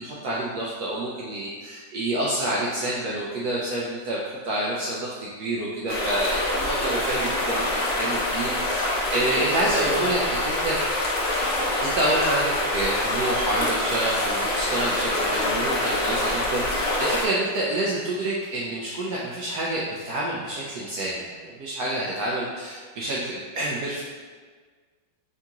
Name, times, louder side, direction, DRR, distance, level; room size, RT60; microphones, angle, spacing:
voice 1, 0.0-7.6 8.0-11.0 11.8-24.0, right 1 dB, 70° right, -5 dB, 0.9 m, -28 dB
sound 1, 5.9-17.3, left 1 dB, 80° left, 0.5 m, -25 dB
3.7 x 3.4 x 2.9 m, 1.5 s
omnidirectional pair, 2.2 m